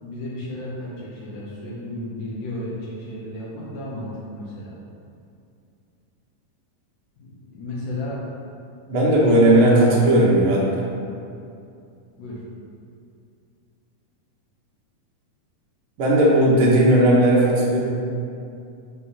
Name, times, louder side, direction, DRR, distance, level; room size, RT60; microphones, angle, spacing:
voice 1, 0.0-4.8 7.2-8.2 9.0-9.8 12.2-12.4, left 1 dB, 75° left, -6 dB, 2.5 m, -33 dB
voice 2, 8.9-10.8 16.0-17.8, right 1 dB, 65° right, -5 dB, 1.4 m, -16 dB
5.7 x 3.3 x 5.6 m, 2.5 s
omnidirectional pair, 3.8 m